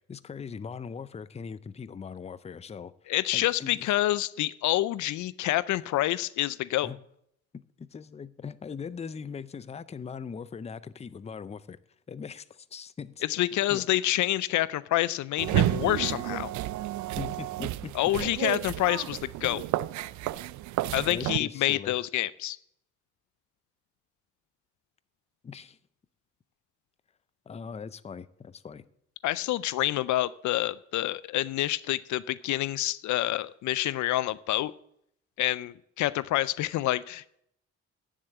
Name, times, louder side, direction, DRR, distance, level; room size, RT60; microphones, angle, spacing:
voice 1, 0.0-2.9 3.3-4.0 6.8-7.0 7.8-11.8 12.1-13.2 13.7-13.8 17.2-17.9 21.1-21.9 25.4-25.8 27.5-28.8, left 6 dB, 20° left, 16 dB, 0.5 m, -40 dB
voice 2, 3.1-6.9 13.3-16.5 17.9-19.6 20.9-22.6 29.2-34.7 35.4-37.4, left 15 dB, 70° left, 18 dB, 0.5 m, -27 dB
sound 1, 15.4-21.4, right 15 dB, 75° right, 0.4 m, -31 dB
9.8 x 7.4 x 8.1 m, 0.74 s
cardioid pair, 90°, 30 cm